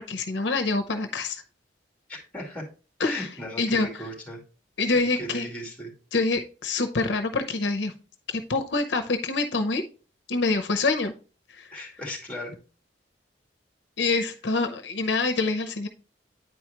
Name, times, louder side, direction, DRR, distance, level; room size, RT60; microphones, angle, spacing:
voice 1, 0.0-1.4 3.0-3.3 3.6-3.9 4.8-5.5 6.1-7.9 8.3-9.8 10.3-11.1 11.6-11.7 14.0-15.9, left 3 dB, 75° left, 7 dB, 0.7 m, -26 dB
voice 2, 2.1-2.7 3.0-4.4 5.1-5.9 11.7-12.6, left 1 dB, 10° left, 0 dB, 2.2 m, -37 dB
9.2 x 4.7 x 3.0 m, 0.34 s
head